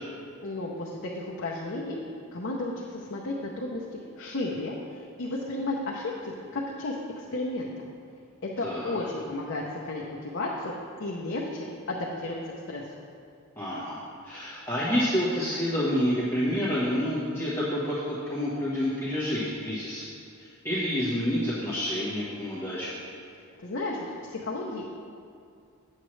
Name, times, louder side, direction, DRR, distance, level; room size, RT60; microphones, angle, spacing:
voice 1, 0.4-2.0 2.3-7.9 8.4-10.7 11.0-12.4 12.7-12.8 23.6-24.9, left 2 dB, 60° left, -2 dB, 0.7 m, -33 dB
voice 2, 8.6-9.0 13.6-20.0 20.4-23.0, equal, 10° left, -10 dB, 1.2 m, -28 dB
9.0 x 7.4 x 3.2 m, 2.4 s
head